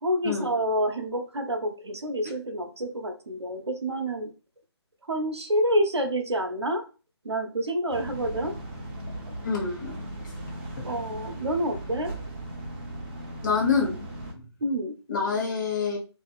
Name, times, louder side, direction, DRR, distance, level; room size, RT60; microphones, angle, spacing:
voice 1, 0.0-4.3 5.1-6.8 7.2-8.6 10.8-12.1 14.6-15.0, right 1 dB, 75° right, 5 dB, 0.7 m, -28 dB
sound 1, 7.9-14.3, right 1 dB, 25° right, 0.7 m, -38 dB
voice 2, 9.4-9.9 13.4-14.1 15.1-16.0, left 5 dB, 45° left, -1 dB, 1.0 m, -26 dB
2.8 x 2.5 x 2.3 m, 0.34 s
figure-of-eight pair, 150°, 14 cm